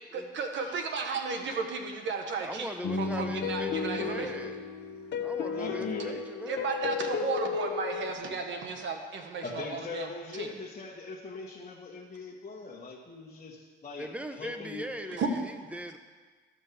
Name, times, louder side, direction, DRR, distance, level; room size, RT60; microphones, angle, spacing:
voice 1, 0.1-2.7 3.0-4.3 6.5-10.6 15.2-15.3, right 4 dB, 70° right, 4 dB, 1.4 m, -34 dB
voice 2, 2.4-4.6 5.2-6.7 14.0-16.0, equal, 5° right, 7 dB, 0.8 m, -39 dB
sound 1, 2.8-8.1, left 6 dB, 60° left, 0.8 m, -34 dB
voice 3, 5.5-6.2 9.4-14.1 14.4-14.9, left 4 dB, 35° left, -4 dB, 1.3 m, -41 dB
12.0 x 5.4 x 7.0 m, 1.5 s
cardioid pair, 90°, 20 cm